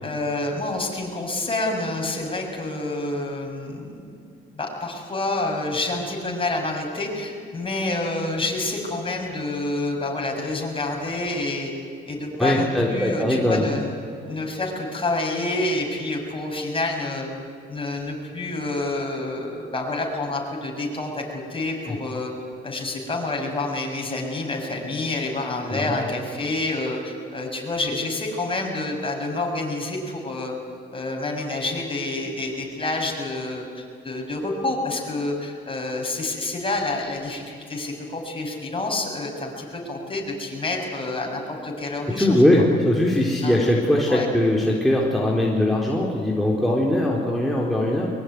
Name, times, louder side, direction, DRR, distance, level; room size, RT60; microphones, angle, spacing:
voice 1, 0.0-4.2 4.5-11.7 12.1-14.0 14.2-17.3 17.7-21.2 21.5-22.3 22.6-30.5 30.9-42.3 43.4-43.6 44.1-44.3, left 2 dB, 25° left, 0 dB, 7.2 m, -28 dB
voice 2, 12.4-13.7 25.7-26.0 42.1-48.1, left 1 dB, ahead, -3 dB, 4.0 m, -20 dB
22.5 x 22.5 x 9.6 m, 2.4 s
cardioid pair, 90°, 20 cm